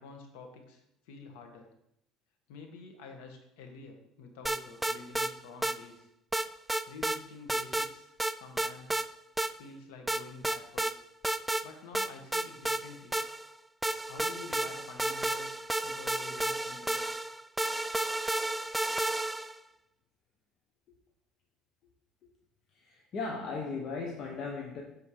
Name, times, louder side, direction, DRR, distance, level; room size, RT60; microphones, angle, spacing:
voice 1, 0.0-1.7 2.5-6.1 6.9-9.0 9.6-10.9 11.6-13.2 14.1-17.1, left 4 dB, 85° left, 3 dB, 1.5 m, -49 dB
sound 1, 4.5-5.3 5.6-5.8 6.3-7.2 7.5-7.9 8.2-9.1 9.4-9.5 10.1-10.9 11.2-11.7 12.0-13.5 13.8-19.6, right 1 dB, 5° right, 0.3 m, -32 dB
voice 2, 22.7-24.8, left 4 dB, 50° left, 0 dB, 1.1 m, -37 dB
7.3 x 4.4 x 4.9 m, 0.81 s
cardioid pair, 110°, 0 cm